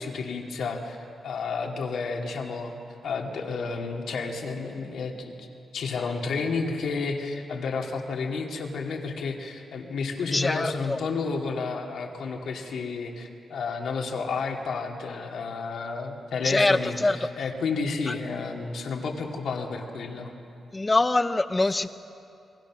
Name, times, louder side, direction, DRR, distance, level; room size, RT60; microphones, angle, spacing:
voice 1, 0.0-2.7 3.0-5.5 5.7-20.3, left 4 dB, 75° left, 1 dB, 2.6 m, -31 dB
voice 2, 10.3-11.0 16.4-17.2 18.1-18.2 20.7-21.9, left 2 dB, 20° left, 11 dB, 0.8 m, -24 dB
28.5 x 22.0 x 6.2 m, 2.6 s
wide cardioid pair, 140°, 0 cm